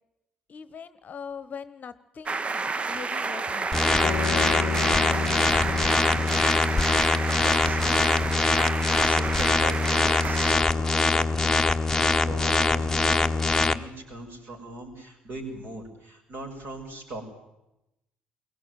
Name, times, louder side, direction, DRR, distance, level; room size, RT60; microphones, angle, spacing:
voice 1, 0.5-2.5 2.9-4.0, left 6 dB, 35° left, 15 dB, 1.1 m, -41 dB
sound 1, 2.3-10.6, right 4 dB, 25° right, 0.8 m, -30 dB
sound 2, 3.7-13.7, left 3 dB, 10° left, 1.2 m, -23 dB
sound 3, 4.0-8.2, left 14 dB, 60° left, 0.9 m, -38 dB
voice 2, 7.4-8.1 9.0-11.6 12.0-17.2, right 2 dB, 50° right, 2 dB, 6.3 m, -40 dB
23.0 x 17.5 x 9.4 m, 0.91 s
figure-of-eight pair, 55°, 4 cm